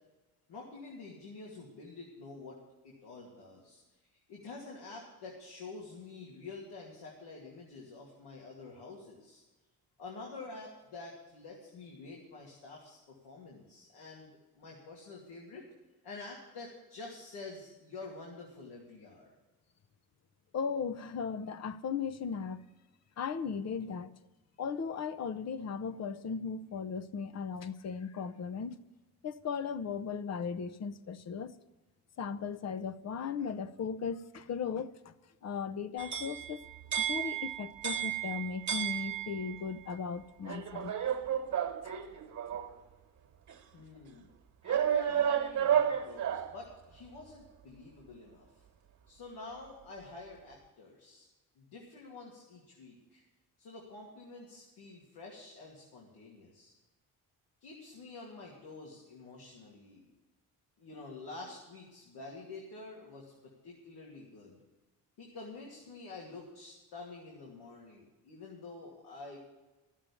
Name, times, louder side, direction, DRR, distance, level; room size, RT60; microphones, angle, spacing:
voice 1, 0.5-2.6 2.8-3.8 4.3-9.4 10.0-15.7 16.0-19.3 43.7-44.3 44.7-48.6 49.1-51.3 51.6-53.2 53.6-56.7 57.6-60.0 60.8-64.6 65.2-69.4, left 3 dB, 85° left, 2.6 m, -48 dB
voice 2, 20.5-22.6 23.2-24.1 24.6-28.8 29.2-31.5 32.2-35.1 35.4-36.6 37.0-40.9, left 6 dB, 45° left, 0.7 m, -37 dB
sound 1, 36.0-39.6 40.4-42.8 43.5-43.6 44.6-46.6, right 9 dB, 50° right, 1.3 m, -32 dB
12.5 x 7.4 x 8.3 m
cardioid pair, 100°, 38 cm